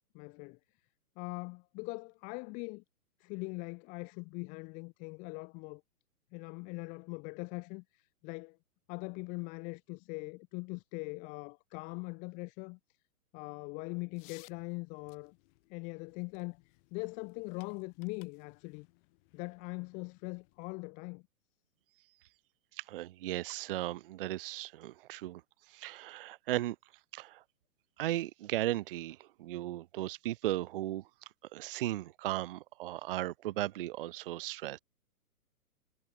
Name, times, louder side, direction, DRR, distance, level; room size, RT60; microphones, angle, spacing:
voice 1, 0.1-0.6 1.2-2.8 3.2-5.8 6.3-8.6 8.9-12.8 13.3-15.4 15.7-16.6 16.9-18.9 19.3-21.2, left 30 dB, 15° left, 0.7 m, -41 dB
sound 1, 14.1-20.7, left 26 dB, 40° left, 7.6 m, -63 dB
voice 2, 22.8-25.4 25.7-26.8 27.1-27.4 28.0-31.0 31.5-34.8, right 15 dB, 35° right, 0.6 m, -36 dB
hypercardioid pair, 140°, 46 cm